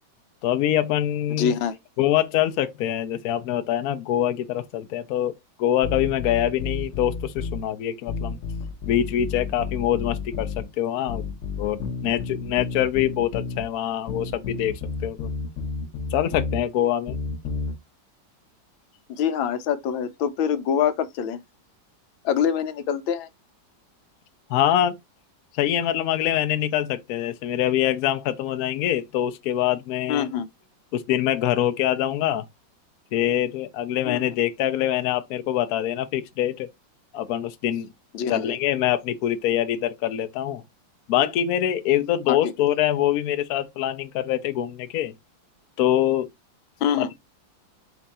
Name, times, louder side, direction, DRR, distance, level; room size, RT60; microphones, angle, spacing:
voice 1, 0.4-1.6 2.0-8.4 8.9-11.2 11.6-14.7 15.0-15.3 16.1-17.2 24.5-25.0 25.5-30.3 30.9-32.5 33.1-36.7 37.1-37.9 38.3-40.6 41.1-45.1 45.8-46.3 47.0-47.1, left 12 dB, 70° left, 0.9 m, -24 dB
voice 2, 1.4-1.8 19.1-21.4 22.2-23.3 30.1-30.5 34.0-34.3 38.1-38.5 42.3-42.4 46.8-47.1, left 8 dB, 85° left, 1.5 m, -25 dB
sound 1, 5.8-7.6 8.1-10.7 11.1-13.6 14.1-16.6 17.1-17.7, left 4 dB, 50° left, 1.1 m, -31 dB
4.5 x 2.5 x 4.1 m
omnidirectional pair, 2.1 m